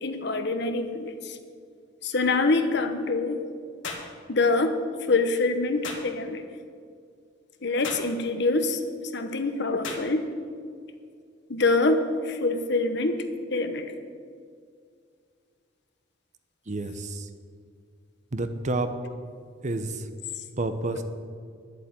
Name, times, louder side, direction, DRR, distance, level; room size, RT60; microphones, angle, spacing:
voice 1, 0.0-1.4 2.0-3.4 4.3-4.7 5.1-6.4 7.6-8.8 9.1-10.2 11.5-13.2 13.5-13.9, left 3 dB, 60° left, 8 dB, 1.1 m, -25 dB
sound 1, 3.8-4.1 5.8-6.1 7.8-8.1 9.8-10.1, left 4 dB, 80° left, 2.1 m, -35 dB
voice 2, 16.7-17.3 18.3-18.9 19.6-20.0 20.6-21.0, right 2 dB, 40° right, 9 dB, 0.9 m, -29 dB
11.5 x 8.3 x 8.8 m, 2.2 s
head